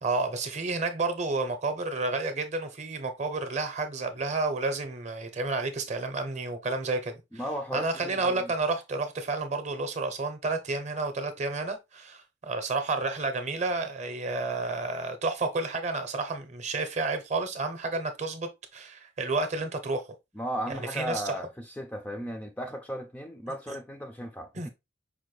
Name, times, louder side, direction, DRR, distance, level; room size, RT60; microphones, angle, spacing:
voice 1, 0.0-7.2 7.7-20.0 20.7-21.4 23.5-23.8 24.5-24.7, right 3 dB, 40° right, 0.7 m, -31 dB
voice 2, 7.3-8.5 20.3-24.7, equal, 10° left, 0.3 m, -36 dB
4.9 x 2.2 x 3.1 m
head